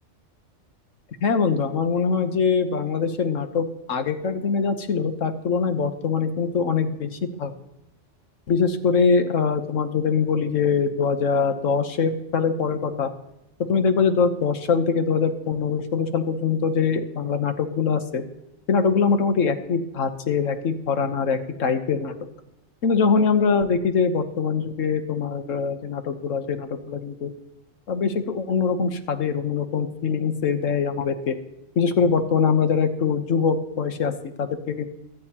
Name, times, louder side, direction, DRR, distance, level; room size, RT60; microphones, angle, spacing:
voice 1, 1.2-7.5 8.5-13.1 13.7-18.2 18.7-22.1 22.8-27.3 27.9-31.4 31.8-34.1 34.4-34.8, left 5 dB, 85° left, 8 dB, 1.4 m, -23 dB
23.0 x 9.0 x 2.9 m, 0.88 s
omnidirectional pair, 1.3 m